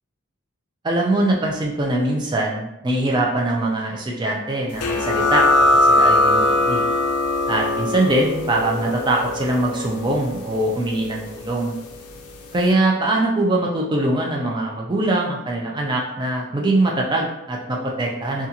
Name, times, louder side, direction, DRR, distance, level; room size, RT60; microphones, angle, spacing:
voice 1, 0.8-5.4 5.8-6.8 7.5-11.8 12.5-18.5, right 2 dB, 20° right, -1 dB, 0.4 m, -22 dB
sound 1, 4.8-12.0, left 1 dB, 80° left, 0.4 m, -21 dB
2.5 x 2.3 x 2.8 m, 0.86 s
head